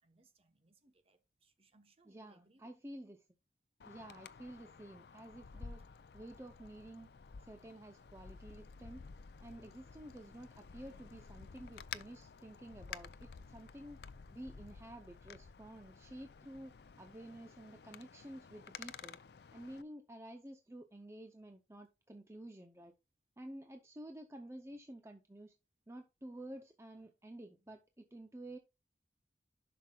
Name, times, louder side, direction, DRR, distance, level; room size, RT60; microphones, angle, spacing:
voice 1, 0.0-2.9, right 2 dB, 35° right, 1.0 m, -70 dB
voice 2, 2.1-3.3 3.8-5.8 6.1-7.1 7.4-9.0 9.4-14.0 14.3-19.2 19.5-22.9 23.4-25.5 25.9-28.6, right 1 dB, 15° right, 0.6 m, -51 dB
Wind, 3.8-19.8, left 6 dB, 65° left, 0.5 m, -52 dB
11.5 x 5.9 x 2.4 m
head